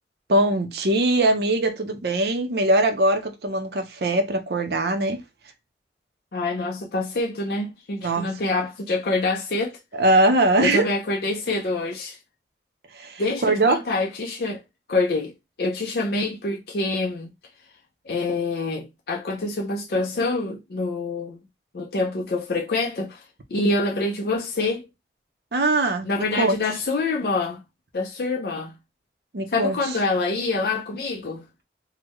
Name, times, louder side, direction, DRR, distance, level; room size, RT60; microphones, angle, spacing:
voice 1, 0.3-5.2 8.0-8.3 9.9-10.9 12.9-13.8 25.5-26.1 26.3-26.6 29.3-29.8, right 2 dB, 65° right, 0.6 m, -21 dB
voice 2, 6.3-9.8 10.6-12.2 13.2-14.6 14.9-15.3 15.6-17.3 18.1-21.4 21.7-23.2 23.5-24.9 26.0-27.6 27.9-28.7 29.5-31.4, left 3 dB, 60° left, 0.5 m, -26 dB
3.6 x 2.1 x 3.0 m
head